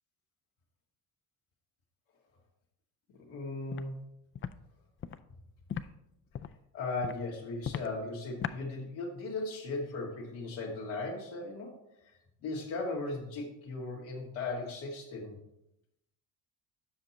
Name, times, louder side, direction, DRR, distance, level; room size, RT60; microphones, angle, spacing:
voice 1, 3.3-3.9 6.7-11.7 12.4-15.4, left 3 dB, 90° left, -2 dB, 2.0 m, -37 dB
Walk footsteps, 3.7-3.9 4.3-4.5 5.0-5.2 5.7-5.8 6.3-6.6 7.0-7.2 7.6-7.9 8.4-8.6, left 8 dB, 30° left, 0.4 m, -36 dB
7.8 x 5.8 x 4.2 m, 0.82 s
supercardioid pair, 65°, 42 cm